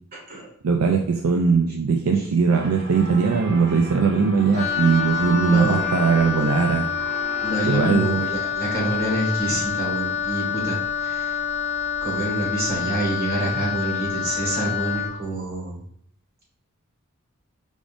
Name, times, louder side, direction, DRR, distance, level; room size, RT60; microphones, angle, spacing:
voice 1, 0.1-0.5 5.4-5.9 7.4-11.4 12.0-15.8, right 1 dB, 40° right, -5 dB, 1.7 m, -27 dB
voice 2, 0.6-6.9 7.6-8.2, right 5 dB, 80° right, 3 dB, 0.4 m, -20 dB
sound 1, 2.5-7.9, right 1 dB, 25° right, 1.2 m, -37 dB
Wind instrument woodwind instrument, 4.5-15.2, left 7 dB, 30° left, 0.5 m, -27 dB
4.9 x 3.5 x 2.5 m, 0.64 s
head